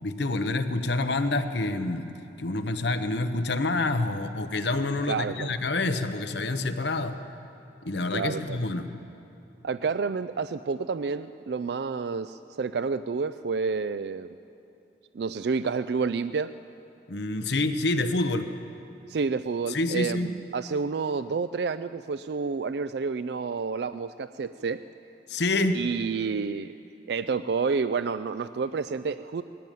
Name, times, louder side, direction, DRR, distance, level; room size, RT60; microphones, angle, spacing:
voice 1, 0.0-2.1 2.4-7.2 7.8-8.9 17.1-18.5 19.7-20.3 25.3-25.8, left 2 dB, 70° left, 8 dB, 1.0 m, -27 dB
voice 2, 5.1-5.5 8.1-8.6 9.6-14.4 15.1-16.5 19.1-24.8 25.7-26.7 27.1-29.4, right 5 dB, 65° right, 12 dB, 0.4 m, -29 dB
19.5 x 15.0 x 9.2 m, 2.9 s
head